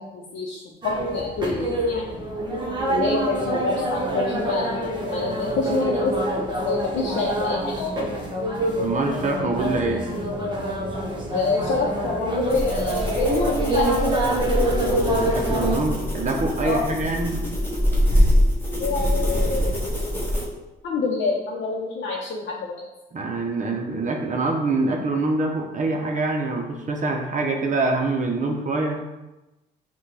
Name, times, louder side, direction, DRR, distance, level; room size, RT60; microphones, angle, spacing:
voice 1, 0.0-2.3 2.9-4.7 5.1-8.1 11.3-13.9 16.6-16.9 18.8-19.7 20.8-22.8, left 3 dB, 65° left, -3 dB, 0.7 m, -27 dB
sound 1, 0.8-15.8, right 1 dB, 25° right, 1.0 m, -26 dB
voice 2, 8.8-10.1 15.2-17.4 23.1-29.0, right 3 dB, 40° right, 1 dB, 0.6 m, -25 dB
sound 2, 12.5-20.5, equal, 10° left, 1.2 m, -24 dB
5.7 x 2.3 x 3.3 m, 1.0 s
cardioid pair, 90°, 20 cm